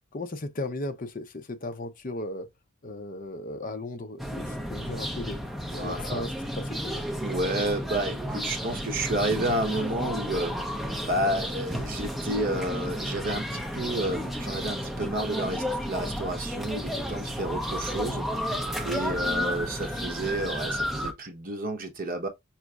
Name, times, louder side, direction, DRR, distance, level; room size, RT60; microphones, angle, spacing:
voice 1, 0.1-2.5 2.8-5.4 5.7-7.0 18.9-19.0, left 2 dB, 40° left, 0.7 m, -36 dB
sound 1, 4.2-21.1, equal, ahead, 0.7 m, -32 dB
voice 2, 5.8-6.2 7.2-10.6 11.0-18.3 18.6-22.3, right 1 dB, 40° right, 1.0 m, -30 dB
5.8 x 3.1 x 2.4 m
head